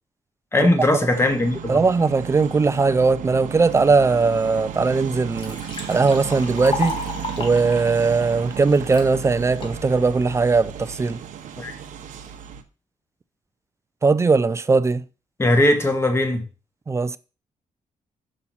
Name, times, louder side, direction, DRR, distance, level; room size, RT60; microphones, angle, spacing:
voice 1, 0.5-1.8 11.6-11.7 15.4-16.4, left 1 dB, 20° left, 1.3 m, -19 dB
sound 1, 1.1-12.6, right 8 dB, 90° right, 0.8 m, -34 dB
voice 2, 1.7-5.6 5.9-7.0 7.4-11.2 14.0-15.0 16.9-17.2, right 4 dB, 20° right, 0.4 m, -19 dB
Liquid, 4.6-4.7 5.0-9.1 9.6-10.1, left 3 dB, 40° left, 1.7 m, -33 dB
6.1 x 5.5 x 4.2 m
cardioid pair, 115°, 13 cm